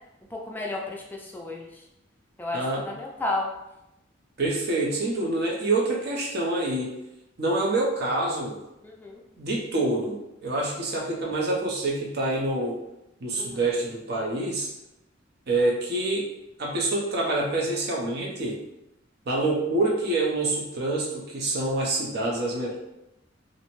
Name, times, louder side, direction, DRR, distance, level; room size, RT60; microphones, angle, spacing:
voice 1, 0.3-1.7 2.4-3.5 9.0-9.2 13.4-13.6, left 2 dB, 10° left, -1 dB, 0.3 m, -32 dB
voice 2, 2.5-3.0 4.4-6.9 7.4-8.6 9.4-12.8 13.2-14.7 15.5-16.3 16.6-18.6 19.3-22.8, right 2 dB, 55° right, -2 dB, 0.6 m, -26 dB
2.6 x 2.0 x 2.9 m, 0.88 s
head